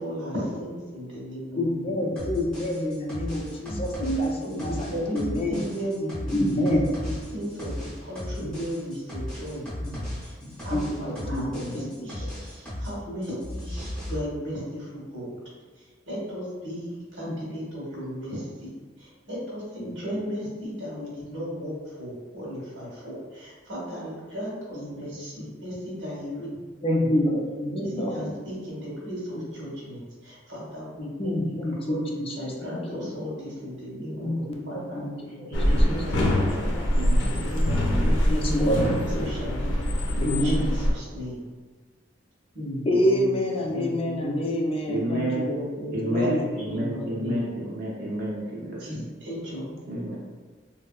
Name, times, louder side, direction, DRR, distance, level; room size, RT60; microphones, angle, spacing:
voice 1, 0.0-2.0 3.7-6.7 7.0-9.7 10.0-10.3 10.6-15.4 15.8-18.7 19.0-26.5 26.8-27.1 27.7-35.0 35.5-36.2 36.5-36.7 37.2-38.7 39.1-41.4 42.5-44.4 45.5-47.4 48.8-49.0 49.2-49.7, equal, 85° right, -6 dB, 1.3 m, -35 dB
voice 2, 1.6-3.9 4.2-5.6 6.3-6.8 8.4-8.5 9.8-10.0 10.4-12.3 17.3-17.4 19.8-19.9 24.8-24.9 26.8-28.1 31.2-32.3 32.6-33.1 34.1-36.0 36.6-36.9 38.3-38.8 40.2-40.7 42.9-45.6 46.1-46.5, left 1 dB, 30° left, -1 dB, 0.4 m, -28 dB
sound 1, 2.2-12.9 13.2-14.2, left 1 dB, 5° left, 0.8 m, -36 dB
sound 2, 35.5-40.9, equal, 80° left, 0.6 m, -24 dB
voice 3, 36.9-37.3 38.6-39.0 44.9-45.5 45.9-49.0 49.9-50.2, right 1 dB, 50° right, -5 dB, 0.5 m, -30 dB
3.2 x 2.7 x 2.3 m, 1.4 s
head